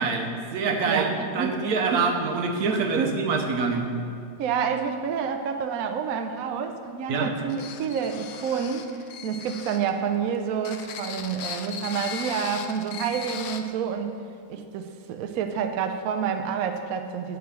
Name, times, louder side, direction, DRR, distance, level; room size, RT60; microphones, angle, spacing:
voice 1, 0.0-3.9 7.1-7.3, right 4 dB, 60° right, 3 dB, 1.3 m, -25 dB
voice 2, 0.9-2.1 3.0-3.1 4.4-14.1 14.5-17.4, right 7 dB, 75° right, 7 dB, 0.8 m, -29 dB
sound 1, 7.5-9.9 10.6-13.6, left 7 dB, 80° left, 1.3 m, -38 dB
7.5 x 7.1 x 7.4 m, 2.4 s
omnidirectional pair, 2.1 m